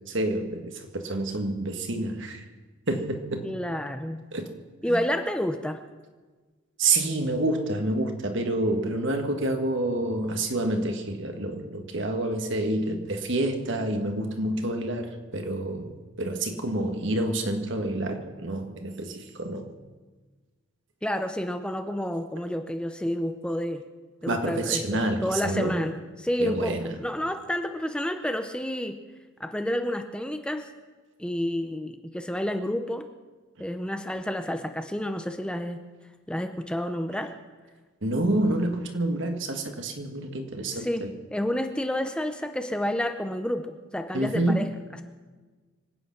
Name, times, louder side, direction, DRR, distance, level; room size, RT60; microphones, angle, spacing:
voice 1, 0.1-2.4 2.9-3.5 4.3-4.5 4.9-5.0 6.8-15.9 16.2-19.7 24.3-25.8 26.4-27.0 38.0-41.1 44.1-44.7, right 2 dB, 60° right, 5 dB, 1.7 m, -28 dB
voice 2, 3.4-4.2 4.8-5.8 21.0-23.8 24.2-29.0 29.4-30.7 31.2-33.1 33.6-35.8 36.3-37.3 40.7-44.7, left 1 dB, 5° left, 7 dB, 0.7 m, -30 dB
25.0 x 9.1 x 6.0 m, 1.3 s
head